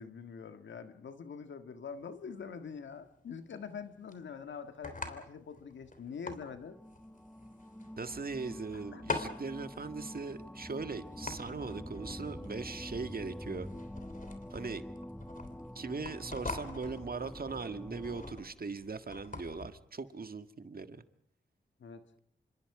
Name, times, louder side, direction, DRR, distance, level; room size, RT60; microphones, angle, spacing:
voice 1, 0.0-6.8 8.7-9.0 21.8-22.0, left 6 dB, 90° left, 1.7 m, -45 dB
sound 1, 1.9-19.7, left 3 dB, 45° left, 3.4 m, -45 dB
sound 2, 6.5-18.3, left 1 dB, 5° left, 1.0 m, -46 dB
voice 2, 8.0-13.7 14.5-14.8 15.7-21.0, right 4 dB, 55° right, 1.7 m, -40 dB
27.5 x 26.0 x 4.9 m
cardioid pair, 50°, 19 cm